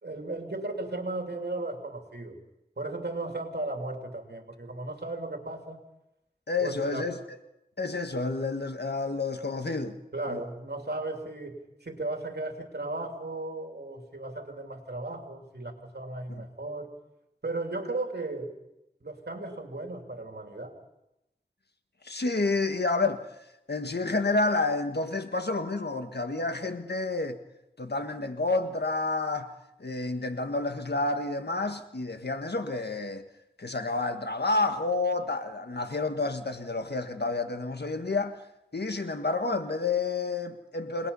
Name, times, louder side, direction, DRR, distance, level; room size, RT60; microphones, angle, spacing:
voice 1, 0.0-2.4 2.8-5.8 6.6-7.0 10.1-16.9 17.4-18.5 19.0-20.7, right 2 dB, 70° right, 2.9 m, -35 dB
voice 2, 6.5-7.2 7.8-10.0 10.3-10.4 16.3-16.4 22.0-23.3 23.7-27.4 27.8-29.5 29.8-33.2 33.6-38.4 38.7-41.1, left 3 dB, 75° left, 1.6 m, -29 dB
28.5 x 19.5 x 5.6 m
wide cardioid pair, 45°, 17 cm